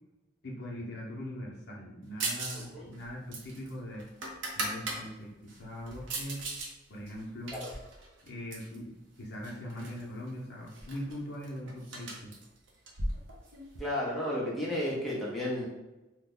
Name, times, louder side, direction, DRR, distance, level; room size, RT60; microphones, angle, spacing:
voice 1, 0.4-4.1 4.5-6.5 6.9-7.6 8.2-12.3, equal, 50° left, -3 dB, 0.7 m, -41 dB
sound 1, 2.2-2.7 2.9-5.0 5.5-6.7 7.1-8.8 9.4-10.0 10.3-10.4 10.7-13.8, right 2 dB, 60° right, 0.6 m, -38 dB
voice 2, 13.8-15.7, left 1 dB, ahead, -7 dB, 0.6 m, -32 dB
2.9 x 2.1 x 3.7 m, 1.0 s
head